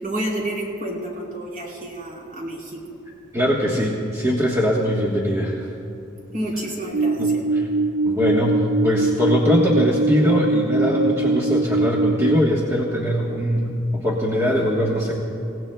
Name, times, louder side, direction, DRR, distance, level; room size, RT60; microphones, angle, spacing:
voice 1, 0.0-2.8 6.3-7.4, right 1 dB, 45° right, -4 dB, 4.3 m, -29 dB
voice 2, 3.3-5.7 7.2-7.3 8.0-15.1, equal, 15° right, -4 dB, 1.2 m, -21 dB
sound 1, 6.9-12.4, right 3 dB, 80° right, 0.5 m, -22 dB
27.5 x 17.0 x 2.3 m, 2.7 s
head